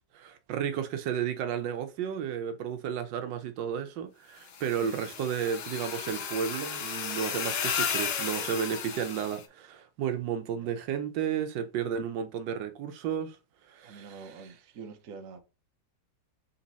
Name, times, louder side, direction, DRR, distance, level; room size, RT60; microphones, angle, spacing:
voice 1, 0.0-13.4 13.7-14.2, right 8 dB, 85° right, 1.3 m, -33 dB
sound 1, 4.5-9.4, left 6 dB, 65° left, 0.6 m, -34 dB
voice 2, 13.8-15.4, right 5 dB, 55° right, 1.1 m, -46 dB
4.1 x 2.9 x 4.0 m
omnidirectional pair, 1.9 m